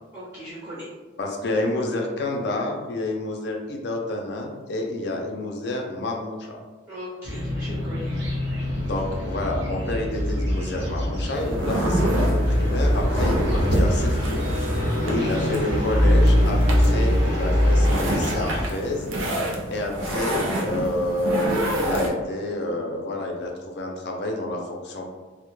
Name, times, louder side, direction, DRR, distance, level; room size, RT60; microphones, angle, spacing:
voice 1, 0.1-0.9 6.9-8.3 15.0-15.4 17.2-17.4 20.8-20.9, equal, 15° right, -10 dB, 0.5 m, -38 dB
voice 2, 1.2-6.6 8.8-19.1 19.7-25.1, left 2 dB, 60° left, 1 dB, 0.4 m, -29 dB
sound 1, 7.2-18.7, equal, 65° right, 0.8 m, -23 dB
sound 2, 11.3-22.1, right 1 dB, 90° right, 0.5 m, -28 dB
2.1 x 2.0 x 3.0 m, 1.3 s
head